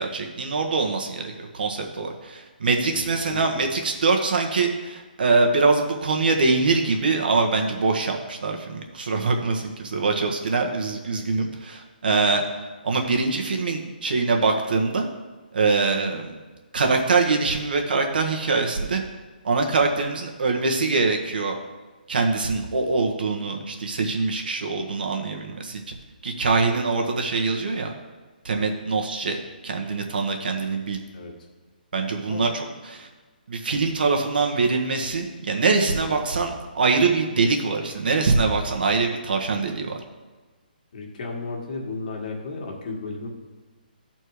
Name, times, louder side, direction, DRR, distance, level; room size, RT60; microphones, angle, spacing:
voice 1, 0.0-12.4 12.8-15.0 15.5-16.3 16.7-19.0 19.4-21.5 22.1-25.8 26.2-27.9 28.4-29.4 29.6-31.0 31.9-33.1 33.5-40.0, right 4 dB, 70° right, 3 dB, 1.4 m, -23 dB
voice 2, 2.9-3.7 31.1-31.3 32.3-32.5 40.9-43.3, left 3 dB, 55° left, 0 dB, 1.9 m, -34 dB
12.5 x 4.4 x 4.8 m, 1.3 s
hypercardioid pair, 160°, 5 cm